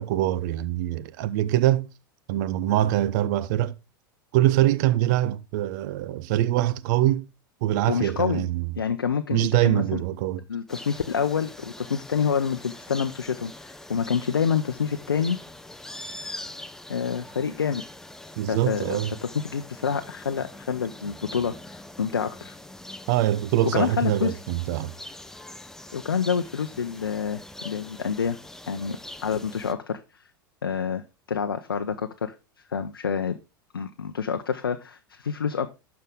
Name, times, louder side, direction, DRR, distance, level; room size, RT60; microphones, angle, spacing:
voice 1, 0.0-1.9 2.3-3.7 4.3-7.3 7.6-8.7 9.3-10.4 18.4-19.1 23.1-24.9, right 14 dB, 55° right, 0.7 m, -24 dB
voice 2, 7.9-8.4 8.8-10.0 10.5-15.4 16.9-17.8 18.5-22.6 23.6-24.4 25.9-28.4 28.7-29.0 29.2-30.0 30.6-32.3 32.7-33.4 33.7-35.7, left 7 dB, 85° left, 0.6 m, -27 dB
sound 1, 10.7-29.7, left 1 dB, 5° left, 0.7 m, -43 dB
12.0 x 4.8 x 3.7 m
figure-of-eight pair, 90°, 12 cm